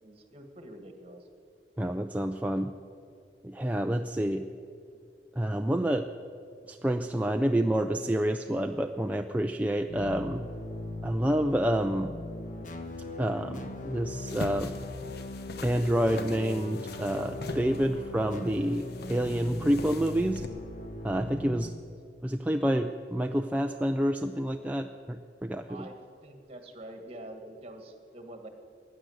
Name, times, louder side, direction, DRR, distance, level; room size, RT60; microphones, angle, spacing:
voice 1, 0.0-1.3 25.7-28.5, right 1 dB, 35° right, 5 dB, 1.8 m, -46 dB
voice 2, 1.8-2.7 3.4-4.5 5.4-6.1 6.7-10.4 11.0-12.1 13.2-14.7 15.6-20.5 21.0-21.7 22.2-25.9, equal, 10° right, 5 dB, 0.4 m, -28 dB
sound 1, 9.9-21.7, left 1 dB, 45° left, 1.2 m, -39 dB
sound 2, 14.3-20.5, left 2 dB, 65° left, 0.9 m, -42 dB
16.5 x 10.5 x 7.9 m, 2.4 s
head